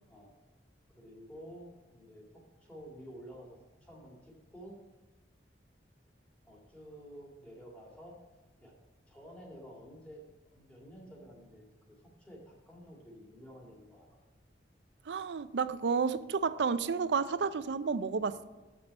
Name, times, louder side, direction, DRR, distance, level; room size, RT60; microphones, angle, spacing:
voice 1, 0.9-4.8 6.4-8.1 8.6-8.7 9.1-10.2 10.5-14.1, equal, 5° left, -3 dB, 2.0 m, -51 dB
voice 2, 15.1-18.4, right 5 dB, 75° right, 13 dB, 0.4 m, -31 dB
7.3 x 6.1 x 5.3 m, 1.2 s
head